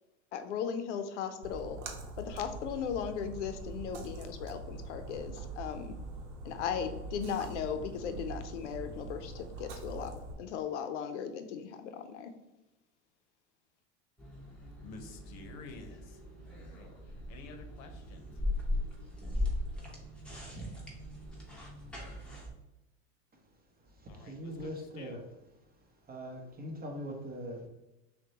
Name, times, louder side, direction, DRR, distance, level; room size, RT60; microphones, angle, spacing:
voice 1, 0.3-1.8 2.2-5.9 6.4-10.1 10.4-12.3, left 7 dB, 85° left, 8 dB, 0.6 m, -37 dB
Splash splatter, 1.4-10.3, right 3 dB, 75° right, 0.8 m, -43 dB
sound 1, 14.2-22.5, left 1 dB, 5° left, 1.0 m, -39 dB
voice 2, 14.8-16.2 16.5-18.4 24.1-25.2, left 3 dB, 50° left, 6 dB, 0.8 m, -51 dB
voice 3, 23.8-25.2 26.0-27.7, equal, 25° right, 1 dB, 0.9 m, -42 dB
5.9 x 2.2 x 2.8 m, 0.96 s
hypercardioid pair, 100°, 35 cm